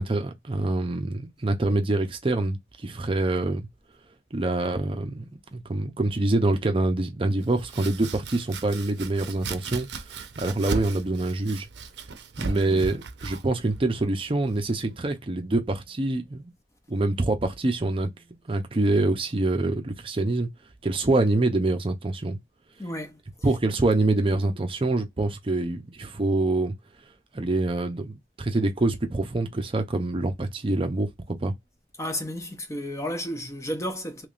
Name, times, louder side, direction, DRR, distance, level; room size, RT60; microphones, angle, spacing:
voice 1, 0.0-3.7 4.3-11.7 12.4-16.5 16.9-18.1 18.5-20.5 20.8-22.4 23.4-26.7 27.3-31.5, right 2 dB, 30° right, 0.6 m, -25 dB
Domestic sounds home sounds, 7.4-15.1, right 4 dB, 80° right, 0.6 m, -37 dB
voice 2, 22.8-23.2 32.0-34.3, equal, 15° left, 0.6 m, -33 dB
3.4 x 3.1 x 2.5 m
head